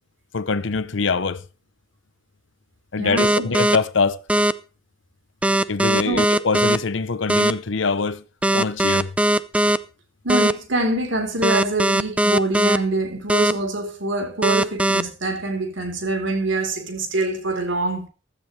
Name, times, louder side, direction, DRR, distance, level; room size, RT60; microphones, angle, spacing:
voice 1, 0.3-1.4 2.9-4.2 5.7-8.2 8.5-9.1, left 4 dB, 65° left, 0.8 m, -23 dB
voice 2, 3.0-3.5 6.0-6.3 10.2-18.1, right 2 dB, 65° right, 3.9 m, -25 dB
sound 1, 3.2-3.8 4.3-4.5 5.4-6.8 7.3-7.5 8.4-9.8 10.3-10.5 11.4-12.8 13.3-13.5 14.4-15.0, right 1 dB, 5° right, 0.6 m, -18 dB
15.5 x 12.5 x 3.3 m
head